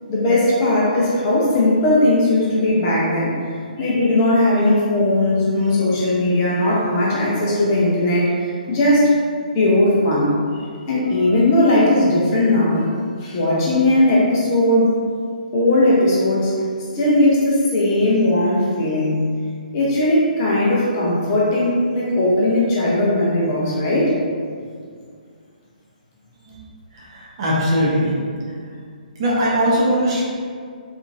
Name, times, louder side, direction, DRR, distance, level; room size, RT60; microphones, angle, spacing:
voice 1, 0.1-3.3 3.8-9.1 9.5-12.9 13.2-14.9 15.5-16.5 16.9-19.2 19.7-24.1, left 1 dB, 25° left, -6 dB, 0.5 m, -18 dB
voice 2, 26.9-28.2 29.2-30.2, equal, 35° right, -6 dB, 0.6 m, -20 dB
2.8 x 2.5 x 2.4 m, 2.1 s
figure-of-eight pair, 135°, 5 cm